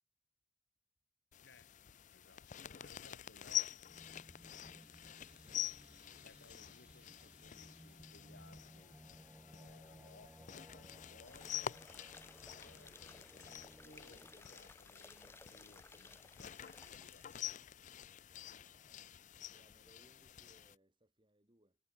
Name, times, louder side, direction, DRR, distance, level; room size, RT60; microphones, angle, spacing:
sound 1, 1.3-20.8, left 11 dB, 45° left, 0.4 m, -47 dB
voice 1, 2.1-4.0 6.2-9.0 9.5-11.9 12.3-17.3, left 2 dB, 70° left, 4.5 m, -64 dB
sound 2, 3.8-14.4, equal, 5° right, 0.7 m, -60 dB
voice 2, 5.3-5.9 18.6-21.8, right 1 dB, 30° right, 5.5 m, -71 dB
sound 3, 11.3-17.5 17.8-17.9, left 2 dB, 15° left, 3.3 m, -59 dB
head